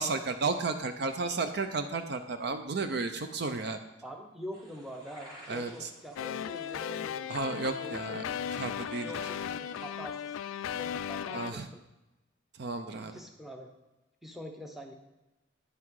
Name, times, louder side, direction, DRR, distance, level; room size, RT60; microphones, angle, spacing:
voice 1, 0.0-3.8 5.5-5.9 7.3-8.2 8.6-9.1 11.3-11.7 12.6-13.1, right 3 dB, 55° right, 8 dB, 0.5 m, -33 dB
voice 2, 4.0-7.3 7.8-8.4 9.0-10.4 10.7-11.8 13.0-13.7 14.2-14.9, equal, ahead, 3 dB, 0.8 m, -45 dB
sound 1, 4.5-9.9, equal, 20° right, 3.4 m, -54 dB
sound 2, 6.2-11.5, left 8 dB, 80° left, 0.3 m, -36 dB
9.5 x 5.8 x 4.7 m, 1.0 s
head